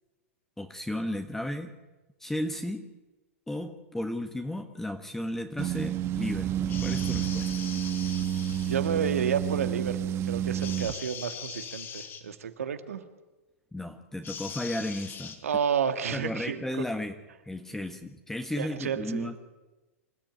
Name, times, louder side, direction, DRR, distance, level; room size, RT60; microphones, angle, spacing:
voice 1, 0.6-1.8 2.2-2.9 3.5-7.5 13.7-15.4 16.1-17.1 17.4-19.4, left 1 dB, 5° left, 6 dB, 1.4 m, -34 dB
sound 1, 5.6-10.9, right 10 dB, 35° right, 1.1 m, -30 dB
sound 2, 6.7-8.9 10.6-12.2 14.2-15.4, left 7 dB, 30° left, 3.8 m, -41 dB
voice 2, 8.6-13.0 15.4-16.6 18.6-19.3, right 7 dB, 85° right, 8 dB, 2.1 m, -31 dB
26.5 x 14.0 x 9.1 m, 1.1 s
hypercardioid pair, 110°, 8 cm